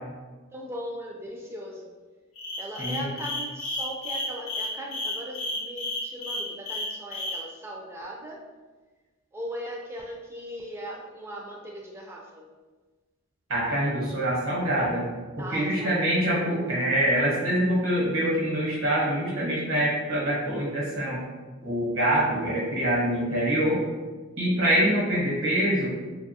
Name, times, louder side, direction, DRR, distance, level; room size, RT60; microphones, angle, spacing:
voice 1, 0.5-1.9 2.6-8.5 9.3-12.5 15.4-16.1, equal, 10° right, -1 dB, 0.3 m, -39 dB
sound 1, 2.4-7.4, left 2 dB, 70° left, 0.7 m, -31 dB
voice 2, 13.5-15.1 15.5-21.2 21.6-23.8 24.4-25.9, right 1 dB, 75° right, -6 dB, 1.1 m, -25 dB
2.7 x 2.3 x 2.7 m, 1.3 s
head